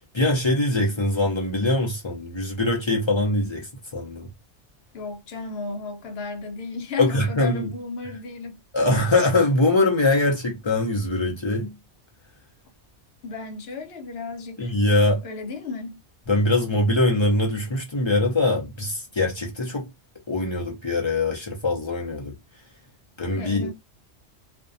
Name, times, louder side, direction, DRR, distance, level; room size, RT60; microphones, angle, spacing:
voice 1, 0.1-4.3 7.0-7.7 8.7-11.8 14.6-15.2 16.3-19.9 20.3-22.3 23.2-23.7, left 2 dB, 35° left, 0.4 m, -22 dB
voice 2, 4.9-8.6 13.2-14.7 15.2-16.0 23.3-23.7, left 4 dB, 65° left, 0.8 m, -34 dB
2.5 x 2.1 x 2.5 m
omnidirectional pair, 1.2 m